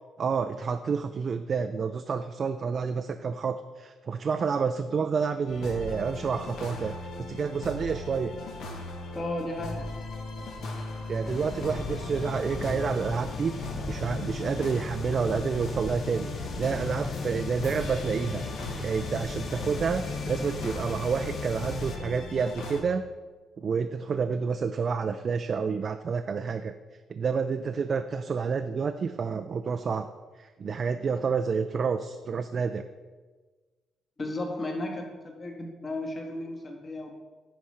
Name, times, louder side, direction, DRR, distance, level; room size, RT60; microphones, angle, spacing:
voice 1, 0.2-6.9 7.3-8.3 11.1-18.4 18.8-23.1 23.6-26.7 27.1-30.1 30.4-32.8, right 5 dB, 45° right, 8 dB, 0.4 m, -29 dB
sound 1, 5.5-22.8, left 3 dB, 80° left, 1.3 m, -38 dB
voice 2, 9.1-9.9 34.2-37.1, left 1 dB, 35° left, 1 dB, 1.7 m, -34 dB
sound 2, 11.2-22.0, left 3 dB, 55° left, 0.8 m, -37 dB
10.5 x 4.2 x 4.9 m, 1.3 s
cardioid pair, 90°, 0 cm